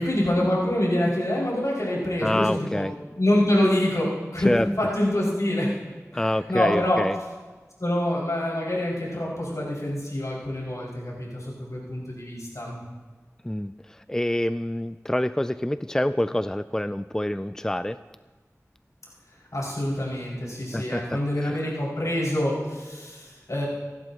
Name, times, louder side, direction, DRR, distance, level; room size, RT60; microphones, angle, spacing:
voice 1, 0.0-2.8 3.1-4.1 4.3-4.5 4.8-5.7 6.1-7.0 7.8-12.8 19.5-23.7, left 1 dB, 75° left, -6 dB, 5.8 m, -26 dB
voice 2, 2.2-2.9 4.4-4.7 6.1-7.2 13.4-13.7 14.1-18.0 20.7-21.7, left 1 dB, 10° left, 13 dB, 0.4 m, -26 dB
27.5 x 12.0 x 3.0 m, 1.3 s
wide cardioid pair, 40°, 6 cm